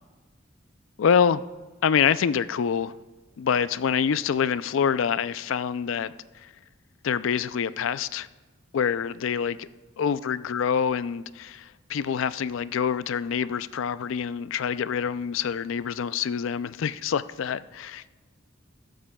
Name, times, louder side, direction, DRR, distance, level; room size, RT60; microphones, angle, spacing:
voice 1, 1.0-1.4 1.8-2.9 3.4-6.5 7.0-8.3 8.7-9.7 10.0-18.0, left 7 dB, 65° left, 0.4 m, -26 dB
14.5 x 12.5 x 2.3 m
head